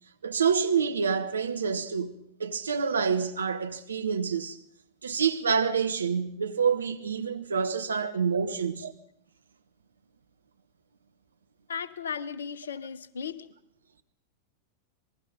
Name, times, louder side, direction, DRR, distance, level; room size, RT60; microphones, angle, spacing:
voice 1, 0.2-4.6 5.0-8.9, right 6 dB, 70° right, 1.4 m, -27 dB
voice 2, 11.7-13.5, left 6 dB, 70° left, 1.0 m, -36 dB
26.5 x 20.5 x 5.4 m
figure-of-eight pair, 90°, 0 cm